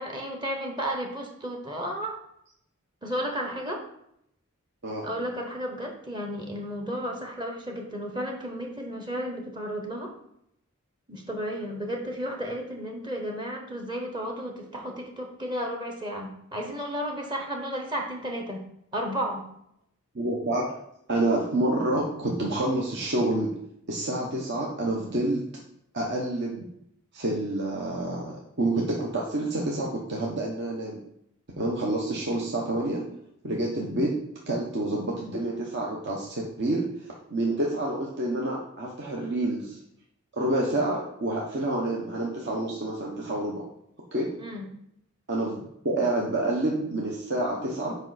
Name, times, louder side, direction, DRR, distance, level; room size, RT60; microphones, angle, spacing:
voice 1, 0.0-2.2 3.0-3.8 5.0-10.1 11.1-18.6 18.9-19.4 44.4-44.7, equal, 20° right, 1 dB, 1.0 m, -33 dB
voice 2, 20.1-20.7 21.1-23.5 23.9-25.4 25.9-26.6 27.1-31.0 31.6-33.0 33.4-34.2 34.5-36.8 37.3-39.8 40.3-43.6 44.1-44.3 45.3-45.6 45.8-48.0, right 1 dB, 55° right, -2 dB, 1.0 m, -28 dB
7.2 x 5.2 x 4.1 m, 0.74 s
head